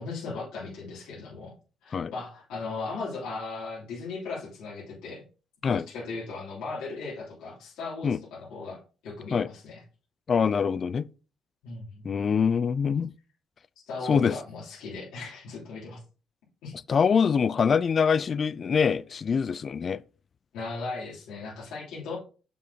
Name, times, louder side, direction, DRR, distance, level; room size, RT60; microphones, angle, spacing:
voice 1, 0.0-1.5 1.8-5.2 5.7-9.8 11.6-12.1 13.9-16.0 16.6-16.7 20.5-22.2, left 3 dB, 90° left, 3.1 m, -37 dB
voice 2, 10.3-11.1 12.0-13.1 14.1-14.3 16.9-20.0, left 6 dB, 40° left, 0.3 m, -24 dB
7.0 x 6.3 x 2.8 m
cardioid pair, 125°, 0 cm